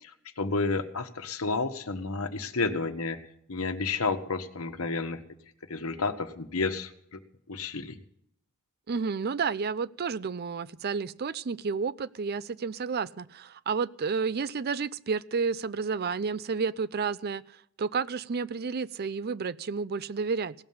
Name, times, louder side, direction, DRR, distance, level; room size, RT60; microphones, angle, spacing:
voice 1, 0.0-3.2 3.5-5.2 5.7-7.2 7.5-8.0, left 3 dB, 75° left, 8 dB, 1.3 m, -31 dB
voice 2, 8.9-20.5, right 5 dB, 45° right, 17 dB, 0.5 m, -31 dB
17.5 x 7.2 x 9.4 m, 0.70 s
head